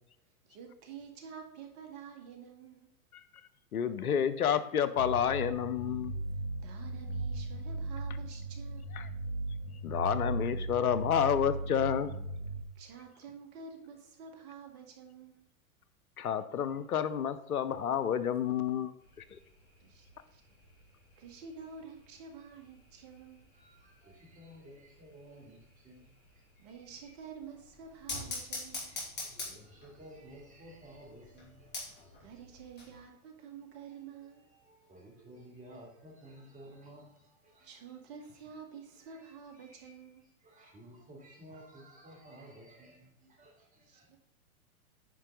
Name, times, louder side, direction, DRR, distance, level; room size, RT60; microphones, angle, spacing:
voice 1, 0.5-2.9 6.6-8.9 12.8-15.5 19.8-20.1 20.3-20.4 21.2-23.5 26.6-28.9 32.2-34.5 37.6-40.3 43.9-44.2, right 6 dB, 45° right, 4 dB, 2.0 m, -49 dB
voice 2, 3.7-6.2 8.9-9.1 9.8-12.2 16.2-18.9, left 8 dB, 80° left, 13 dB, 0.8 m, -30 dB
sound 1, 5.0-12.6, right 2 dB, 90° right, 1.4 m, -37 dB
sound 2, 19.0-33.0, left 2 dB, 25° left, 3.4 m, -47 dB
voice 3, 23.5-27.2 28.3-32.8 33.3-38.3 38.9-44.2, right 1 dB, 15° right, -2 dB, 3.2 m, -55 dB
9.6 x 5.5 x 3.8 m, 0.82 s
hypercardioid pair, 110°, 44 cm